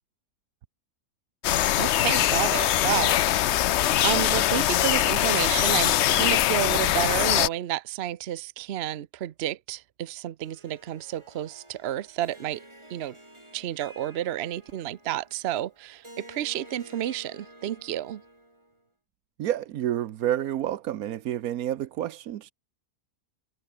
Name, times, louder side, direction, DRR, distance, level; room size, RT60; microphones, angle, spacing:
sound 1, 1.4-7.5, left 12 dB, 65° left, 0.7 m, -22 dB
voice 1, 1.8-3.5 4.0-12.6 12.9-13.2 13.5-18.2, right 12 dB, 55° right, 0.9 m, -31 dB
Harp, 10.4-18.8, right 1 dB, 20° right, 4.8 m, -51 dB
voice 2, 19.4-22.5, right 12 dB, 80° right, 1.2 m, -29 dB
omnidirectional pair, 1.5 m